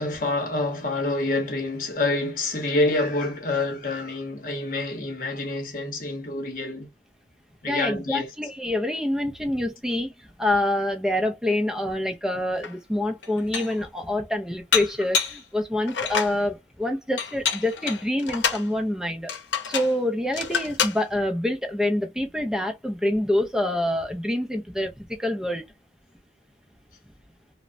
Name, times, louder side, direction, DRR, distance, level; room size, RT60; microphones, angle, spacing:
voice 1, 0.0-6.9 7.6-8.3, left 2 dB, 50° left, 0.9 m, -27 dB
voice 2, 7.7-19.3 19.6-25.6, left 1 dB, 5° right, 0.4 m, -26 dB
Dishes pots and pans, 12.6-12.7 13.2-13.8 14.7-15.4 15.9-16.4 17.2-18.7 19.3-20.0 20.3-21.0, left 6 dB, 80° left, 0.7 m, -27 dB
3.1 x 2.0 x 2.5 m
head